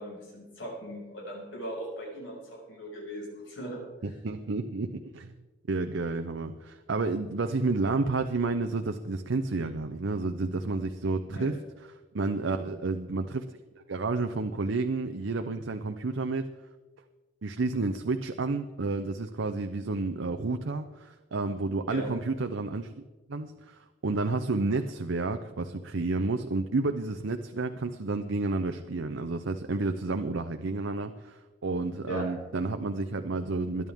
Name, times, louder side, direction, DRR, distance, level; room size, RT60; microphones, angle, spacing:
voice 1, 0.0-3.8 11.2-11.5 12.5-12.7 21.9-22.1 32.0-32.3, right 1 dB, 85° left, -2 dB, 5.9 m, -39 dB
voice 2, 4.0-5.3 5.7-11.6 12.1-13.4 13.9-16.5 17.4-22.9 23.3-33.9, right 3 dB, 90° right, 7 dB, 0.7 m, -30 dB
21.5 x 11.0 x 3.6 m, 1.2 s
head